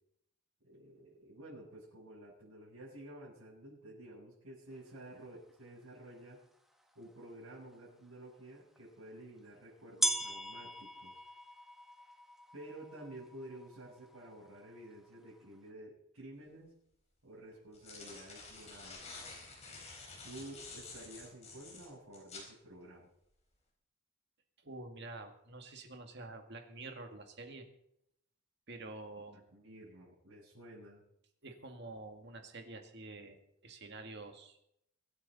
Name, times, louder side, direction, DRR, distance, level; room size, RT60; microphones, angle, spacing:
voice 1, 0.6-6.4 6.9-11.1 12.5-16.7 17.2-19.0 20.2-23.1 29.5-31.0, right 1 dB, 85° right, -9 dB, 7.4 m, -51 dB
sound 1, 6.1-6.2 6.9-7.0 8.8-8.9 10.0-15.6, equal, ahead, 1.3 m, -40 dB
sound 2, 16.5-16.6 17.5-22.5, left 3 dB, 30° left, 4.0 m, -50 dB
voice 2, 24.6-27.7 28.7-29.5 31.4-33.4 33.6-34.6, right 2 dB, 50° right, 5 dB, 2.0 m, -48 dB
24.0 x 9.6 x 4.2 m, 0.75 s
head